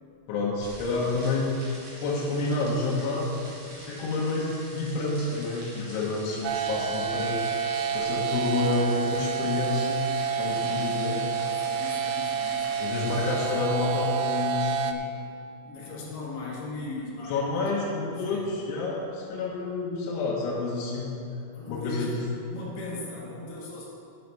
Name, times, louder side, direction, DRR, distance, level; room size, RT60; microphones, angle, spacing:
voice 1, 0.3-1.5 2.0-3.3 3.9-7.5 7.9-10.0 10.4-11.2 12.8-15.0 17.3-21.2 21.7-22.1, left 3 dB, 90° left, -5 dB, 3.6 m, -29 dB
sound 1, 0.6-13.3, right 1 dB, 50° right, 3.1 m, -45 dB
sound 2, 6.4-14.9, right 7 dB, 85° right, 2.3 m, -29 dB
voice 2, 8.1-8.4 10.7-12.9 15.6-17.4 18.2-18.5 21.5-22.2 22.5-23.9, left 2 dB, 60° left, -5 dB, 3.8 m, -39 dB
11.0 x 7.8 x 5.5 m, 2.6 s
omnidirectional pair, 5.2 m